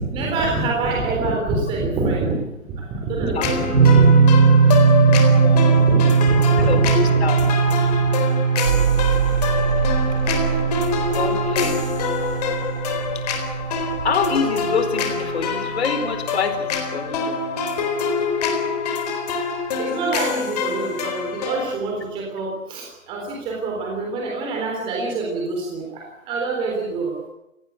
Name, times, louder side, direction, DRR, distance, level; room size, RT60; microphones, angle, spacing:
voice 1, 0.0-2.4 2.7-4.5 5.0-5.2 5.7-7.3 7.7-8.0 19.8-27.2, right 3 dB, 10° right, -1 dB, 3.8 m, -26 dB
sound 1, 3.4-21.8, left 5 dB, 30° left, 4.0 m, -26 dB
sound 2, 3.7-16.6, right 5 dB, 75° right, 6.5 m, -19 dB
voice 2, 5.2-5.6 6.6-7.4 11.1-11.8 13.1-13.5 14.0-17.4, left 5 dB, 50° left, 9 dB, 4.5 m, -26 dB
Mechanical fan, 8.6-15.5 15.8-16.6, right 7 dB, 50° right, 2.7 m, -27 dB
30.0 x 18.0 x 8.2 m, 0.88 s
hypercardioid pair, 160°, 40 cm